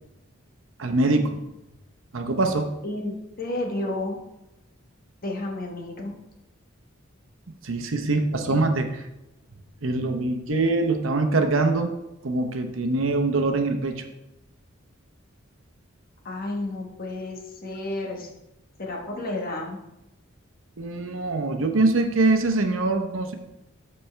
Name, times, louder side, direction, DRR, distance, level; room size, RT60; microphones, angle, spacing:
voice 1, 0.8-1.4 2.1-2.7 7.6-8.9 9.8-11.9 12.2-14.0 20.8-23.3, right 2 dB, 70° right, 5 dB, 0.8 m, -23 dB
voice 2, 2.8-4.2 5.2-6.1 8.5-8.7 16.2-18.3 18.8-19.8, left 2 dB, 45° left, 1 dB, 1.2 m, -31 dB
12.5 x 4.3 x 3.3 m, 0.93 s
head